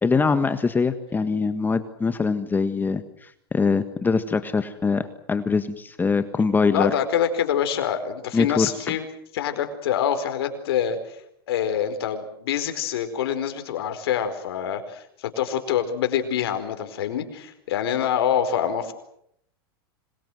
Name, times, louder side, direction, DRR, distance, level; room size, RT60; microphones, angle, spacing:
voice 1, 0.0-6.9 8.3-9.0, left 4 dB, 15° left, 10 dB, 1.6 m, -23 dB
voice 2, 6.7-9.0 9.3-11.2 11.5-18.9, left 9 dB, 80° left, 7 dB, 4.6 m, -25 dB
26.0 x 24.0 x 7.9 m, 0.73 s
hypercardioid pair, 120°, 13 cm